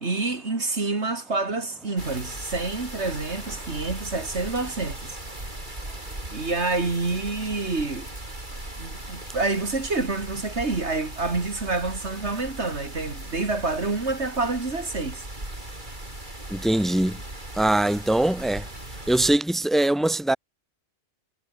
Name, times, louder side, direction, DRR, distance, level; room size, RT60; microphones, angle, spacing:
voice 1, 0.0-5.2 6.3-8.1 8.8-15.2, right 3 dB, 55° right, 2.9 m, -28 dB
sound 1, 2.0-19.4, right 1 dB, 35° right, 5.7 m, -38 dB
voice 2, 16.5-17.2 17.5-18.7 19.1-20.4, right 1 dB, ahead, 2.4 m, -22 dB
omnidirectional pair, 1.4 m